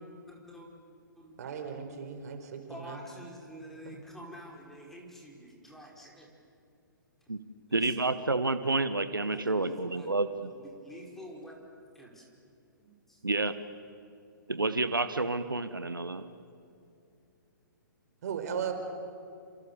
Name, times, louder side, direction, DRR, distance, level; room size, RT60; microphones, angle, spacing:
voice 1, 0.3-0.7 1.1-1.4 2.7-6.3 7.7-8.1 9.2-11.6 11.9-12.2 12.8-13.2, equal, 5° left, -2 dB, 5.0 m, -48 dB
voice 2, 1.4-3.0 3.8-4.0 18.2-18.7, right 7 dB, 50° right, 6 dB, 4.5 m, -37 dB
voice 3, 7.7-10.5 13.2-13.5 14.5-16.2, right 3 dB, 85° right, 11 dB, 1.2 m, -29 dB
28.5 x 26.5 x 7.1 m, 2.5 s
figure-of-eight pair, 125°, 11 cm